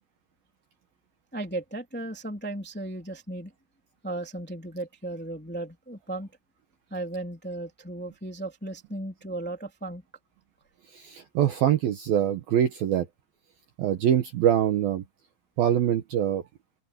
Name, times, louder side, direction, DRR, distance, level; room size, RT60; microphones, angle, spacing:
voice 1, 1.3-3.5 4.0-6.3 6.9-10.0, right 2 dB, 5° left, 1.8 m, -35 dB
voice 2, 10.9-13.1 13.8-15.0 15.6-16.4, right 10 dB, 65° right, 2.5 m, -24 dB
open air
omnidirectional pair, 5.5 m